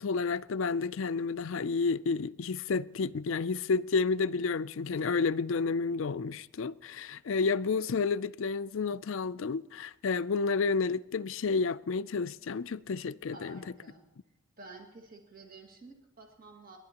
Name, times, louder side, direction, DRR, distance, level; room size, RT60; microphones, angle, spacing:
voice 1, 0.0-13.6, left 4 dB, 65° left, 0.4 m, -30 dB
voice 2, 13.3-14.1 14.6-16.8, right 2 dB, 40° right, 1.9 m, -51 dB
29.5 x 11.5 x 2.9 m
head